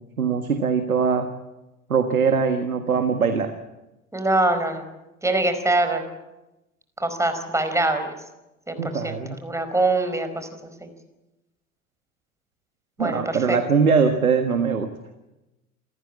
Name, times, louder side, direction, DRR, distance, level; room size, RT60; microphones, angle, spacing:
voice 1, 0.2-1.3 1.9-3.5 8.8-9.4 13.0-14.9, right 5 dB, 85° right, 8 dB, 1.7 m, -21 dB
voice 2, 4.1-4.8 5.2-6.0 7.0-8.1 8.7-10.7 13.0-13.6, right 2 dB, 5° right, 7 dB, 4.8 m, -24 dB
28.5 x 14.0 x 8.8 m, 0.99 s
figure-of-eight pair, 75°, 42 cm